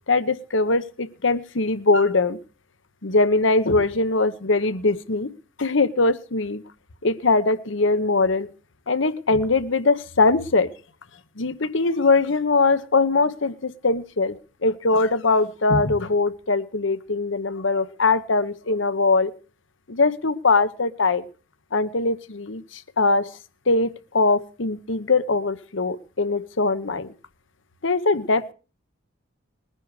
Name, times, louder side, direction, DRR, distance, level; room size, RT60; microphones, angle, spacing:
voice 1, 0.1-2.4 3.0-5.3 5.6-6.6 7.0-8.5 8.9-10.7 11.4-14.4 14.6-19.3 19.9-21.2 21.7-23.3 23.7-27.1 27.8-28.5, left 3 dB, 70° left, 13 dB, 1.0 m, -21 dB
20.5 x 10.0 x 4.9 m, 0.37 s
head